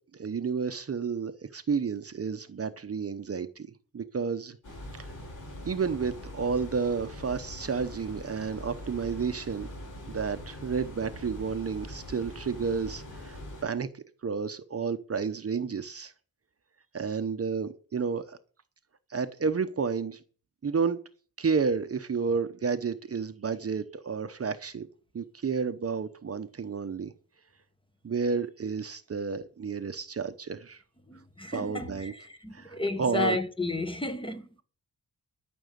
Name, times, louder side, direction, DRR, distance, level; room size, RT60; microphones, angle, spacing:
voice 1, 0.1-3.7 3.9-4.6 5.0-5.1 5.6-9.7 10.1-16.1 16.9-18.4 19.1-20.2 20.6-21.0 21.4-24.9 25.1-27.1 28.0-30.8 31.5-32.1 32.5-33.4, right 5 dB, 40° right, 0.8 m, -31 dB
sound 1, 4.6-13.6, left 1 dB, 60° left, 6.3 m, -42 dB
voice 2, 31.1-32.1 32.4-34.4, left 2 dB, 15° left, 1.1 m, -32 dB
13.0 x 6.2 x 8.1 m
wide cardioid pair, 170°, 35 cm